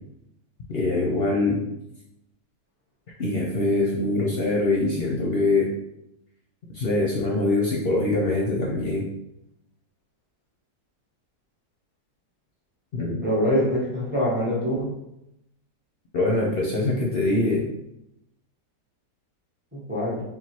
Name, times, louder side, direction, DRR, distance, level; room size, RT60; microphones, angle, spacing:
voice 1, 0.7-1.6 3.2-5.7 6.7-9.0 12.9-13.2 16.1-17.6, left 2 dB, 55° left, -2 dB, 0.6 m, -23 dB
voice 2, 13.2-14.9 19.7-20.2, equal, 10° right, -5 dB, 0.5 m, -24 dB
3.7 x 2.4 x 4.3 m, 0.83 s
omnidirectional pair, 1.8 m